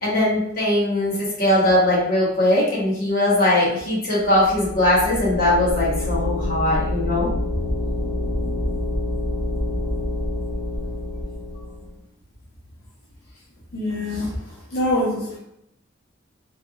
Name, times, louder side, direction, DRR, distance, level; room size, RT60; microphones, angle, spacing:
voice 1, 0.0-7.3, left 1 dB, 45° left, -7 dB, 1.2 m, -20 dB
sound 1, 4.2-11.9, left 1 dB, 30° left, 0.9 m, -27 dB
voice 2, 13.7-14.3 14.7-15.4, left 1 dB, 75° left, -6 dB, 0.8 m, -24 dB
3.3 x 2.8 x 2.4 m, 0.79 s
head